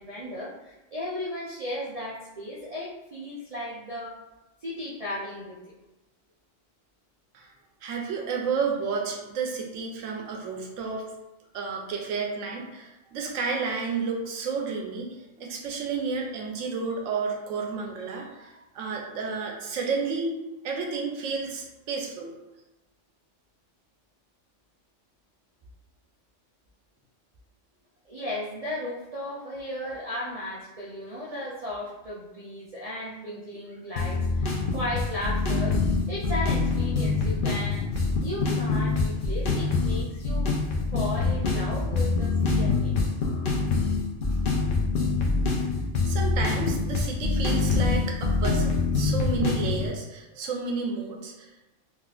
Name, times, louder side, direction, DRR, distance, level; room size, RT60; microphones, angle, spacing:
voice 1, 0.0-4.2 4.6-5.7 28.1-35.8 36.1-37.9 38.2-40.5 40.9-43.0, left 1 dB, 70° right, -6 dB, 0.3 m, -35 dB
voice 2, 7.8-11.0 11.5-22.3 46.0-51.6, right 4 dB, 85° right, 1 dB, 1.0 m, -31 dB
sound 1, 34.0-49.9, left 3 dB, 55° left, 0.6 m, -25 dB
3.7 x 2.4 x 2.3 m, 0.97 s
omnidirectional pair, 1.3 m